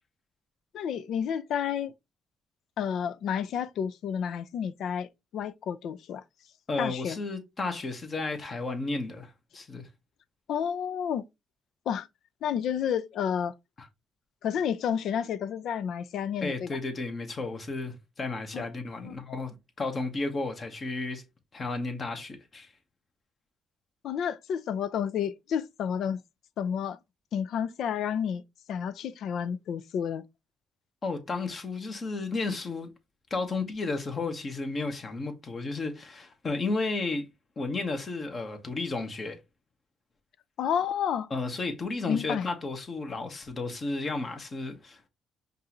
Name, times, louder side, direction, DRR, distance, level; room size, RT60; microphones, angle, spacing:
voice 1, 0.7-1.9 2.8-6.2 6.8-7.2 10.5-11.2 11.9-12.1 12.4-13.5 14.4-16.7 18.5-18.7 19.0-19.1 24.0-26.2 26.6-27.0 27.3-28.4 28.7-30.2 40.6-41.3 42.1-42.5, left 8 dB, 75° left, 0.4 m, -30 dB
voice 2, 6.7-9.9 13.8-13.9 16.4-21.2 21.5-22.7 31.0-32.9 33.3-37.2 37.6-39.4 41.3-45.1, left 3 dB, 40° left, 1.3 m, -33 dB
5.3 x 2.6 x 2.9 m
cardioid pair, 90°, 0 cm